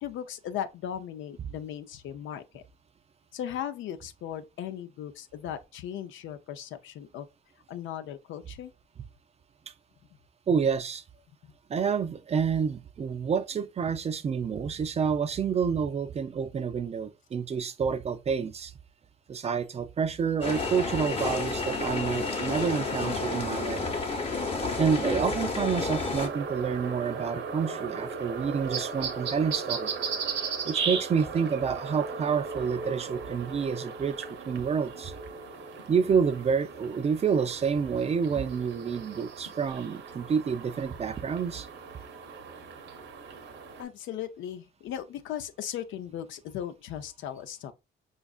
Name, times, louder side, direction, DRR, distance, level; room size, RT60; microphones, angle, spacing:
voice 1, 0.0-2.6 3.3-7.3 7.7-8.7 11.4-11.5 43.8-47.7, left 10 dB, 75° left, 0.5 m, -37 dB
voice 2, 10.5-11.0 11.7-18.7 19.3-23.9 24.8-29.9 30.7-35.1 35.9-41.7, right 6 dB, 35° right, 0.3 m, -28 dB
sound 1, 20.4-26.3, left 3 dB, 30° left, 0.8 m, -30 dB
sound 2, 26.2-43.8, right 5 dB, 65° right, 0.7 m, -37 dB
5.0 x 2.4 x 2.3 m
cardioid pair, 90°, 20 cm